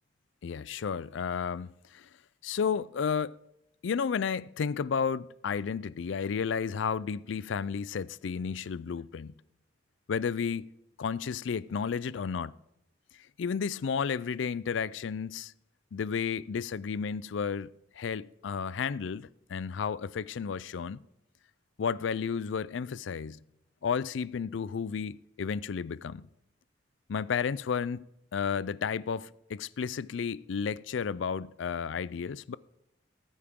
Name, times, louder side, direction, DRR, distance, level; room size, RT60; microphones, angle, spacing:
voice 1, 0.4-2.1 2.4-3.4 3.8-9.3 10.1-10.7 11.0-12.5 13.4-15.5 15.9-17.7 18.0-21.0 21.8-23.4 23.8-26.3 27.1-28.1 28.3-32.5, left 6 dB, 75° left, 0.4 m, -32 dB
19.0 x 8.7 x 3.6 m
head